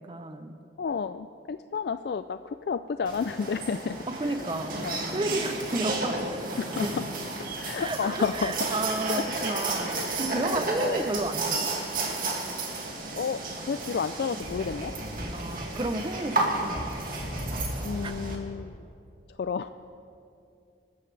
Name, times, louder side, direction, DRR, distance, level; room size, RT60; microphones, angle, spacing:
voice 1, 0.0-0.6 4.1-4.9 5.1-6.5 6.8-6.9 7.7-11.7 15.3-17.1 18.0-18.1, right 2 dB, 25° right, 8 dB, 0.6 m, -32 dB
voice 2, 0.8-4.0 4.2-4.4 4.8-5.0 6.6-7.1 7.4-8.6 9.1-10.1 10.5-11.0 13.2-14.9 17.8-18.9 19.4-19.7, left 5 dB, 65° left, 11 dB, 0.3 m, -31 dB
sound 1, 3.1-18.4, right 2 dB, 50° right, 2.2 m, -32 dB
26.5 x 13.5 x 3.3 m, 2.6 s
head